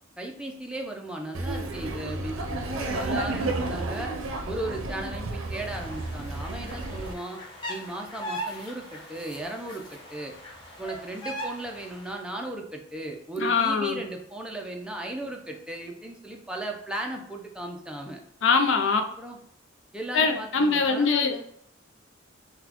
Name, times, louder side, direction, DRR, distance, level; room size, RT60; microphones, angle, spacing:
voice 1, 0.2-4.1 4.5-7.4 7.7-10.3 10.8-18.2 19.0-19.4 19.9-21.5, right 1 dB, 5° right, 0 dB, 0.4 m, -36 dB
Laughter, 1.3-7.1, right 2 dB, 90° right, 0.5 m, -32 dB
sound 1, 5.6-12.2, right 1 dB, 25° left, 0.8 m, -40 dB
voice 2, 13.4-14.0 18.4-19.0 20.1-21.3, left 4 dB, 65° left, 6 dB, 0.4 m, -22 dB
3.9 x 2.2 x 2.9 m, 0.68 s
head